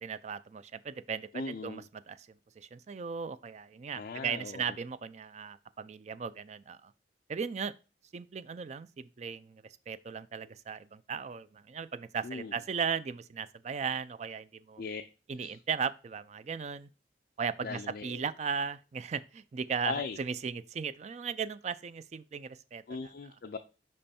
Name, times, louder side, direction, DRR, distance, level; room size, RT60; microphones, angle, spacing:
voice 1, 0.0-2.2 2.6-6.9 7.3-7.7 8.1-14.8 15.3-16.9 17.4-22.8, right 6 dB, 40° right, 0.3 m, -37 dB
voice 2, 1.3-1.9 3.9-4.8 12.2-12.6 14.8-15.0 15.4-15.6 17.6-18.2 19.8-20.2 22.9-23.6, left 4 dB, 55° left, 0.4 m, -39 dB
5.4 x 5.3 x 4.2 m
head